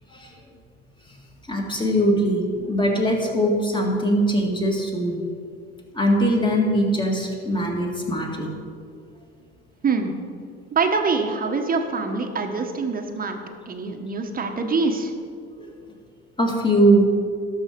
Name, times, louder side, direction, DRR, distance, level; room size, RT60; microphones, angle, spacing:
voice 1, 1.5-5.2 5.9-8.5 15.6-15.7 16.4-17.1, right 1 dB, 15° left, 0 dB, 2.1 m, -21 dB
voice 2, 10.7-13.4 13.7-15.1, right 4 dB, 25° right, 4 dB, 1.2 m, -24 dB
12.5 x 5.6 x 5.3 m, 2.2 s
supercardioid pair, 85°, 32 cm